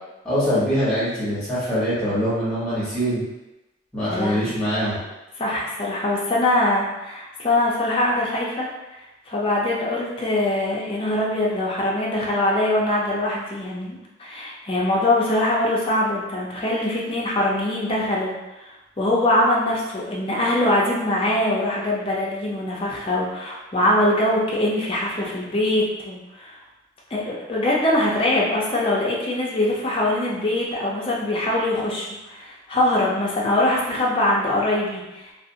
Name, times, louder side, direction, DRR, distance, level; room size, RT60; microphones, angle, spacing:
voice 1, 0.2-3.2 3.9-5.0, equal, 5° left, -11 dB, 1.1 m, -23 dB
voice 2, 4.0-4.4 5.4-8.7 9.3-18.3 19.0-26.5 27.1-35.2, left 1 dB, 30° left, -4 dB, 0.5 m, -22 dB
2.5 x 2.0 x 2.7 m, 1.0 s
head